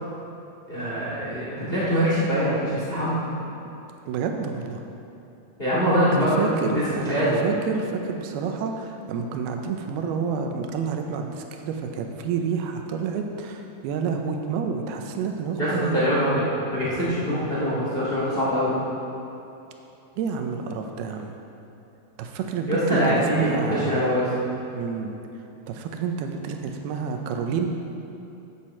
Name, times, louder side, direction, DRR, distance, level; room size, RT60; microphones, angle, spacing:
voice 1, 0.7-3.2 5.6-6.8 7.1-7.4 15.5-16.4 16.7-18.7 22.7-24.5, equal, 70° left, -8 dB, 0.5 m, -23 dB
voice 2, 4.1-4.8 6.1-16.0 20.2-21.3 22.2-23.0 23.3-24.0 24.8-25.1 25.7-27.8, right 6 dB, 80° right, 4 dB, 2.3 m, -29 dB
13.0 x 8.2 x 4.3 m, 2.9 s
omnidirectional pair, 5.3 m